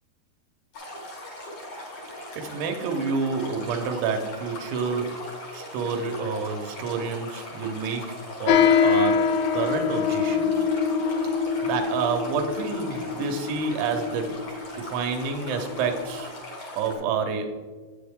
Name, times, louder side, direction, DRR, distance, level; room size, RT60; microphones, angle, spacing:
Stream, 0.7-16.9, left 1 dB, 65° left, 1.3 m, -40 dB
voice 1, 2.4-5.2 5.5-10.6 11.2-14.3 14.8-16.3 16.8-17.6, right 5 dB, 85° right, 4 dB, 3.2 m, -29 dB
sound 1, 8.5-16.3, left 6 dB, 85° left, 2.3 m, -24 dB
8.7 x 7.8 x 3.5 m, 1.4 s
omnidirectional pair, 5.2 m